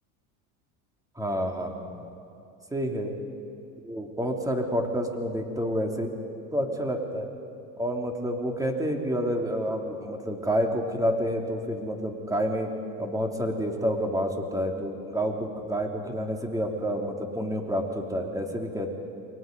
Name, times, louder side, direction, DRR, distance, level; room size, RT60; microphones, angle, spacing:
voice 1, 1.2-1.9 2.7-3.1 3.8-6.1 6.5-7.3 7.8-12.7 13.0-18.9, equal, 10° right, 2 dB, 3.0 m, -29 dB
29.0 x 22.5 x 5.3 m, 2.8 s
supercardioid pair, 100°, 44 cm